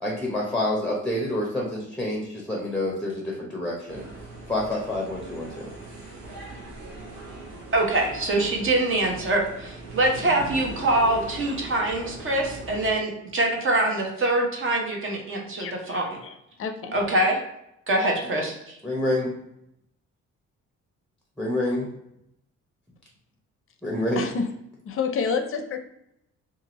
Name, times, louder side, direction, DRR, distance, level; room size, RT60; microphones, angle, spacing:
voice 1, 0.0-4.0 4.5-5.7 18.4-18.5 18.8-19.3 21.4-21.9 23.8-24.2, left 1 dB, ahead, -2 dB, 0.7 m, -27 dB
sound 1, 3.9-12.9, right 2 dB, 90° right, 0.9 m, -40 dB
voice 2, 7.7-16.2 16.9-17.4 17.9-18.5, right 2 dB, 45° right, 1 dB, 0.9 m, -24 dB
voice 3, 15.6-16.9 24.2-24.5 24.8-25.8, left 5 dB, 45° left, 7 dB, 0.5 m, -29 dB
2.7 x 2.5 x 2.9 m, 0.80 s
cardioid pair, 90°, 30 cm